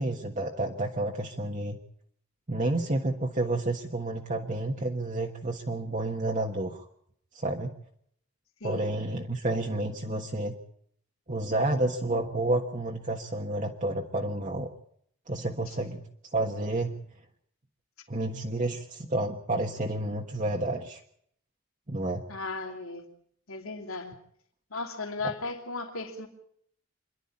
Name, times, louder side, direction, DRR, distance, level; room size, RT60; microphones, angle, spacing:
voice 1, 0.0-1.8 2.5-6.9 7.3-7.7 8.6-10.6 11.3-14.7 15.3-16.0 16.3-17.0 18.1-21.0 21.9-22.2, right 2 dB, 35° right, 1.4 m, -30 dB
voice 2, 8.6-8.9 22.3-23.1 23.5-24.1 24.7-26.3, left 3 dB, 85° left, 2.9 m, -36 dB
26.5 x 11.5 x 8.6 m
head